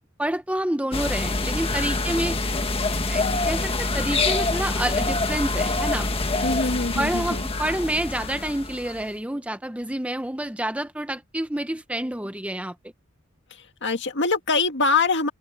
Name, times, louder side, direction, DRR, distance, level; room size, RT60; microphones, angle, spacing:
voice 1, 0.2-2.4 3.1-6.1 7.0-12.7, right 1 dB, 5° right, 0.9 m, -28 dB
sound 1, 0.9-9.0, left 3 dB, 30° left, 1.6 m, -26 dB
voice 2, 6.4-7.4 13.5-15.3, left 4 dB, 60° left, 1.9 m, -24 dB
open air
head